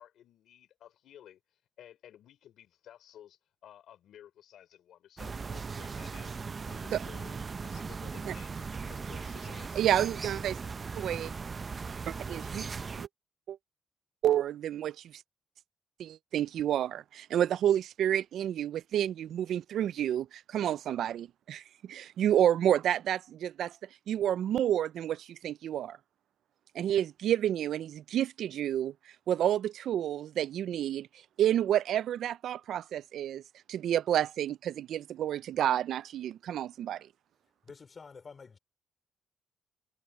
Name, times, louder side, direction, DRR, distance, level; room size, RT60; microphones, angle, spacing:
voice 1, 0.0-9.8, left 11 dB, 75° left, 3.9 m, -54 dB
sound 1, 5.2-13.1, right 5 dB, 35° right, 0.6 m, -38 dB
voice 2, 9.8-10.6 11.0-11.3 12.1-12.7 13.0-13.1 13.5-13.6 14.2-15.2 16.0-23.7 24.1-26.0 26.7-28.9 29.3-31.1 31.4-33.4 33.7-37.1, right 11 dB, 70° right, 0.4 m, -29 dB
voice 3, 37.6-38.6, left 5 dB, 35° left, 3.3 m, -49 dB
cardioid pair, 90°, 0 cm